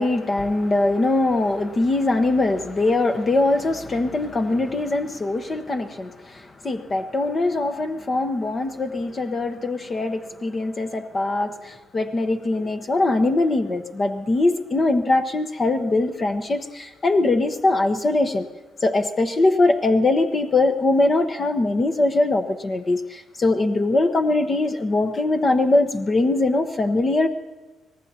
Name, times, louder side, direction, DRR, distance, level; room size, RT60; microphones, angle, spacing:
voice 1, 0.0-18.5 18.8-27.3, left 2 dB, 35° left, 6 dB, 1.1 m, -22 dB
25.0 x 18.5 x 2.9 m, 1.2 s
cardioid pair, 90°, 0 cm